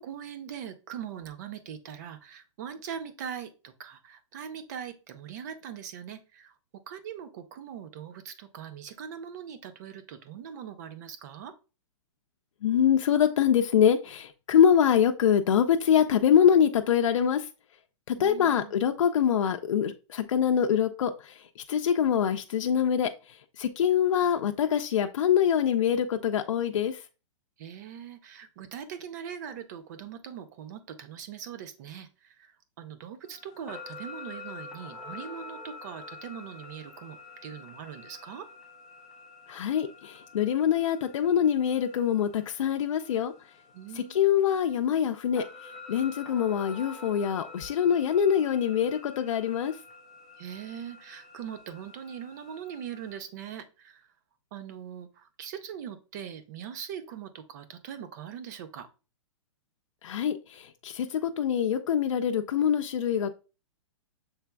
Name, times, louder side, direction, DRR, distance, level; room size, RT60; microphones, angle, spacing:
voice 1, 0.0-11.5 18.2-18.8 27.6-38.5 43.7-44.3 50.4-54.1 54.5-58.9, right 8 dB, 35° right, 0.6 m, -41 dB
voice 2, 12.6-17.5 18.1-21.3 21.7-23.1 23.6-27.0 39.5-43.3 44.0-45.4 45.9-49.7 60.0-63.3, left 8 dB, 80° left, 0.5 m, -24 dB
sound 1, 33.2-53.2, left 3 dB, ahead, 0.8 m, -48 dB
7.2 x 3.3 x 2.2 m
hypercardioid pair, 170°, 16 cm